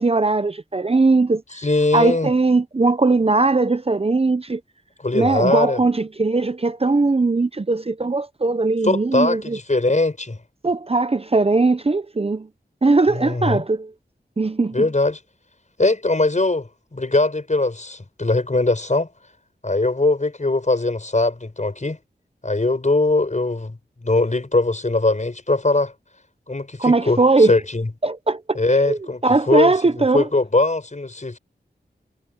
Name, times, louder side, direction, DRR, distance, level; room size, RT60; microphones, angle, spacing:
voice 1, 0.0-1.4 1.9-4.6 5.1-9.6 10.6-12.5 12.8-13.9 14.4-14.9 26.8-27.6 28.0-30.3, right 3 dB, 35° right, 0.7 m, -19 dB
voice 2, 1.5-2.3 5.0-5.8 8.8-10.4 13.1-13.6 14.7-15.2 15.8-19.1 19.6-22.0 22.4-25.9 26.5-27.9 28.5-29.2 29.5-29.7 30.1-31.4, left 2 dB, 40° left, 5.8 m, -21 dB
wide cardioid pair, 65°, 18 cm